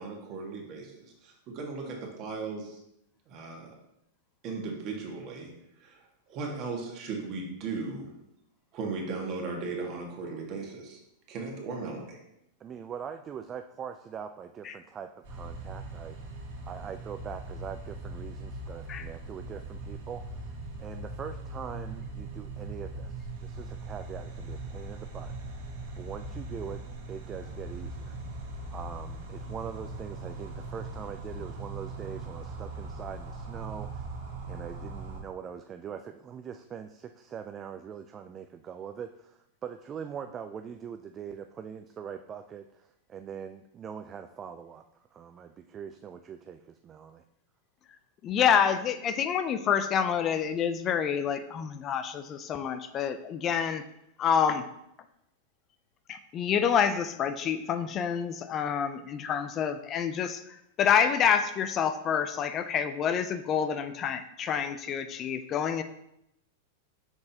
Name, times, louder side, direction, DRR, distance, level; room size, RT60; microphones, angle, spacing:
voice 1, 0.0-2.8 3.3-3.7 4.4-5.5 5.8-8.1 8.7-11.0 11.3-12.2, right 4 dB, 45° right, 0 dB, 1.7 m, -37 dB
voice 2, 12.6-16.2 16.7-20.5 20.8-25.3 25.9-28.1 28.7-34.1 34.5-44.8 45.1-47.2, right 7 dB, 30° right, 7 dB, 0.3 m, -42 dB
sound 1, 15.2-35.2, right 2 dB, 65° right, 1.8 m, -40 dB
voice 3, 48.2-53.8 54.2-54.7 56.1-65.8, left 8 dB, 35° left, 10 dB, 0.4 m, -27 dB
6.0 x 5.3 x 2.9 m, 0.80 s
hypercardioid pair, 105°, 0 cm